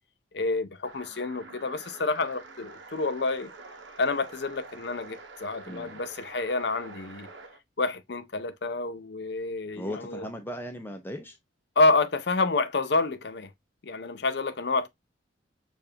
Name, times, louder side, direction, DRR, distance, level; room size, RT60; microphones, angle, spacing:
voice 1, 0.3-3.5 4.0-7.3 7.8-10.3 11.8-13.5 13.8-14.9, left 3 dB, 60° left, 0.6 m, -28 dB
sound 1, 0.8-7.6, right 3 dB, 80° right, 1.1 m, -47 dB
voice 2, 5.6-6.0 9.7-11.4, equal, 10° left, 0.6 m, -37 dB
6.8 x 2.5 x 2.7 m
head